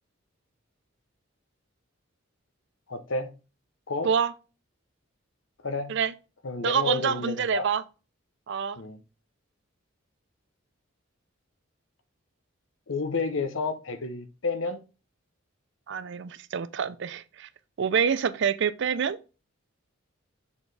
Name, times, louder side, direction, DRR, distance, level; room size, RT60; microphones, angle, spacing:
voice 1, 2.9-3.3 3.9-4.1 5.6-5.9 6.4-7.7 8.8-9.0 12.9-14.8, left 3 dB, 70° left, 0.8 m, -30 dB
voice 2, 6.6-7.8 8.5-8.8 15.9-17.5 17.8-19.2, right 7 dB, 60° right, 0.4 m, -26 dB
6.9 x 4.3 x 3.3 m
head